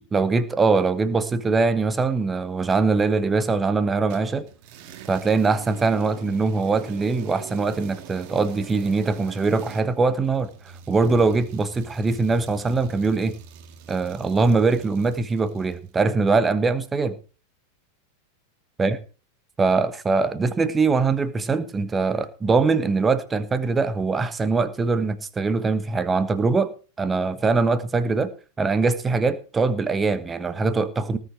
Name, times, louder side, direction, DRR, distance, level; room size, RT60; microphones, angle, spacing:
voice 1, 0.1-4.5 5.1-10.5 10.9-13.3 13.9-17.2 18.8-19.0 19.6-28.3 28.6-31.2, right 4 dB, 15° right, 13 dB, 1.2 m, -22 dB
sound 1, 4.1-15.9, right 8 dB, 45° right, 1.8 m, -44 dB
19.0 x 7.5 x 4.5 m, 0.35 s
figure-of-eight pair, 90°, 0 cm